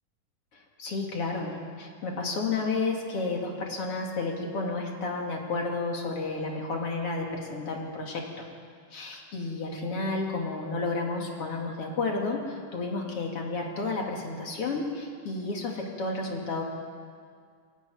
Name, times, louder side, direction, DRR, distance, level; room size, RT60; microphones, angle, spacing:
voice 1, 0.8-8.5 8.9-16.6, left 3 dB, 50° left, 0 dB, 3.2 m, -31 dB
21.5 x 12.5 x 9.5 m, 2.1 s
omnidirectional pair, 3.6 m